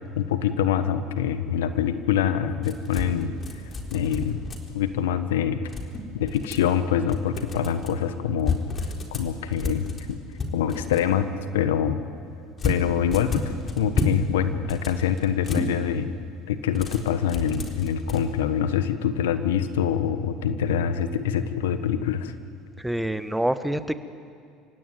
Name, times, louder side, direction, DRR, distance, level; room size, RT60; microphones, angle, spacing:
voice 1, 0.2-3.3 3.9-4.4 4.7-5.7 6.1-8.6 9.1-10.2 10.5-12.0 12.6-16.1 16.5-22.3, left 9 dB, 80° left, 11 dB, 1.3 m, -25 dB
sound 1, 2.6-4.9 5.7-6.7 7.1-7.9 8.4-11.1 12.6-14.2 14.5-15.7 16.7-18.2, left 3 dB, 35° left, 4.0 m, -31 dB
voice 2, 22.8-23.9, right 1 dB, 5° right, 12 dB, 1.3 m, -26 dB
28.5 x 17.0 x 9.4 m, 2.3 s
hypercardioid pair, 70°, 0 cm